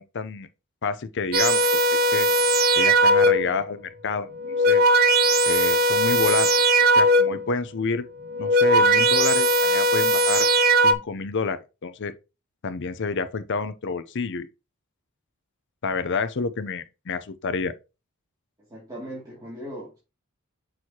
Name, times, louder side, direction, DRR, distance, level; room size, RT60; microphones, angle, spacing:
voice 1, 0.1-0.5 0.8-1.6 2.1-2.3 2.8-4.3 4.7-4.8 5.5-6.5 7.0-8.1 8.4-10.5 10.8-12.1 12.6-14.5 15.8-17.7, left 4 dB, 55° left, 0.6 m, -28 dB
sound 1, 1.3-3.6 4.3-7.5 8.2-10.9, right 1 dB, 45° right, 0.6 m, -19 dB
voice 2, 18.7-20.0, equal, 15° right, 2.4 m, -38 dB
6.3 x 6.2 x 2.9 m
head